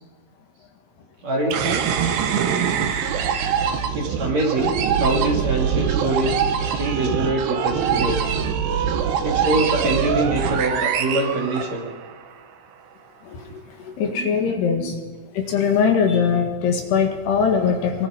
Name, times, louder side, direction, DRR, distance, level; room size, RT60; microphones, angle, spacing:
voice 1, 1.2-1.8 3.9-4.7 5.0-8.2 9.2-11.9 14.0-14.4 14.7-15.0, right 2 dB, 40° right, -1 dB, 3.2 m, -24 dB
sound 1, 1.5-12.1, right 7 dB, 70° right, 3.2 m, -23 dB
voice 2, 13.2-15.0 15.3-18.1, left 6 dB, 65° left, 3 dB, 3.8 m, -21 dB
24.0 x 24.0 x 5.1 m, 1.3 s
omnidirectional pair, 5.5 m